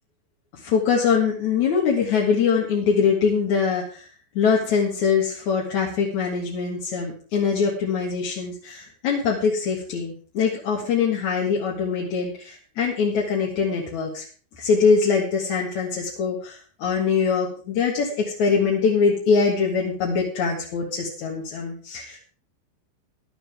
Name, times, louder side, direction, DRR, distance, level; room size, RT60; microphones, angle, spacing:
voice 1, 0.6-4.1 4.3-14.2 14.6-22.2, left 5 dB, 55° left, -3 dB, 2.5 m, -23 dB
16.5 x 11.5 x 3.5 m, 0.42 s
omnidirectional pair, 5.2 m